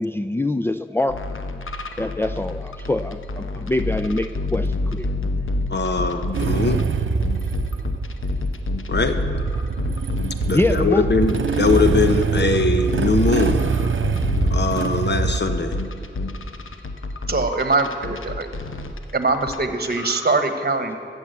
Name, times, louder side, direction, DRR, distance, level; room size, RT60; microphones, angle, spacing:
voice 1, 0.0-1.4 2.0-5.1 10.5-11.1, left 2 dB, 10° left, 9 dB, 0.4 m, -24 dB
sound 1, 1.1-6.8 7.2-19.6 19.8-20.3, left 2 dB, 85° left, 0.9 m, -28 dB
voice 2, 5.7-6.9 8.9-9.2 10.5-13.7 14.5-15.7, left 3 dB, 60° left, 8 dB, 1.0 m, -21 dB
Motorcycle / Engine starting, 6.3-15.4, right 5 dB, 75° right, 0.6 m, -24 dB
voice 3, 17.3-18.5 19.1-21.0, right 3 dB, 50° right, 8 dB, 1.2 m, -22 dB
14.5 x 7.3 x 8.1 m, 2.5 s
wide cardioid pair, 55°, 20 cm